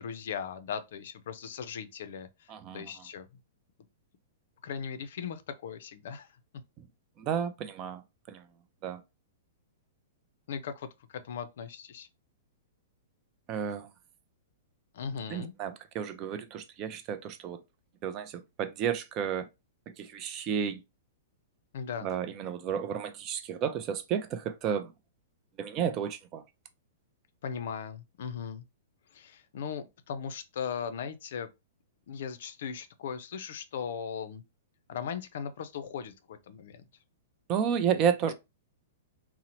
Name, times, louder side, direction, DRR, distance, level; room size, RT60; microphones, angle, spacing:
voice 1, 0.0-3.3 4.6-6.3 10.5-12.1 14.9-15.5 21.7-22.1 27.4-28.6 29.1-31.5 32.1-34.4 34.9-36.8, left 7 dB, 65° left, 0.4 m, -38 dB
voice 2, 2.5-2.9 7.2-8.0 8.3-8.4 8.8-9.0 13.5-13.9 15.3-17.6 18.0-19.5 20.0-20.8 22.0-24.9 25.6-26.4 37.5-38.3, right 8 dB, 35° right, 0.4 m, -32 dB
2.8 x 2.0 x 2.8 m
hypercardioid pair, 120°, 0 cm